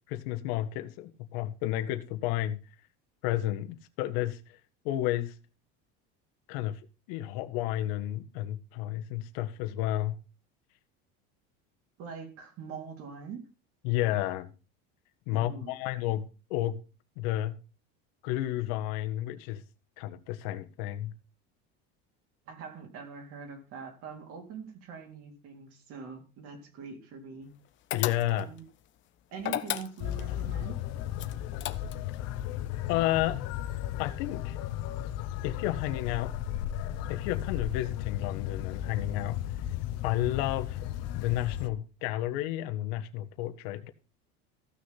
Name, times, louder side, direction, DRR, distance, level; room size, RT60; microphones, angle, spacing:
voice 1, 0.1-2.6 3.2-4.6 4.8-5.3 6.5-6.8 7.1-10.2 13.8-14.5 15.3-16.8 17.2-17.5 18.2-19.6 20.0-21.1 27.9-28.5 32.9-33.4 34.0-34.6 35.4-36.3 37.1-39.4 40.0-40.8 41.1-43.9, left 14 dB, 75° left, 8 dB, 1.5 m, -31 dB
voice 2, 12.0-13.4 15.3-15.9 22.5-27.5 28.3-28.6 29.3-30.8, right 6 dB, 50° right, 3 dB, 3.6 m, -43 dB
sound 1, 27.9-28.6 29.4-30.3 31.2-32.2, left 13 dB, 40° left, 1.0 m, -34 dB
sound 2, 30.0-41.7, left 12 dB, 55° left, 1.3 m, -35 dB
15.0 x 6.5 x 5.8 m, 0.33 s
cardioid pair, 150°, 30 cm